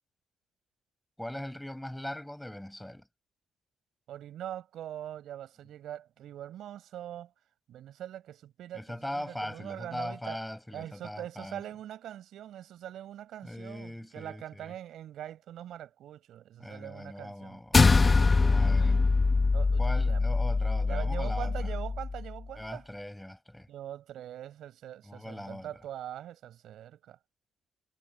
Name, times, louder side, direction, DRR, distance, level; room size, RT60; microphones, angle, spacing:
voice 1, 1.2-3.1 8.7-11.7 13.4-14.8 16.6-18.0 18.4-19.0 19.8-21.7 22.6-23.7 25.0-25.7, left 1 dB, 5° left, 6.2 m, -40 dB
voice 2, 4.1-7.3 7.7-10.4 10.7-17.6 18.5-19.1 19.5-20.3 20.9-22.8 23.7-27.2, right 11 dB, 75° right, 4.9 m, -43 dB
sound 1, 17.7-22.3, left 3 dB, 30° left, 1.1 m, -24 dB
cardioid pair, 90°, 0 cm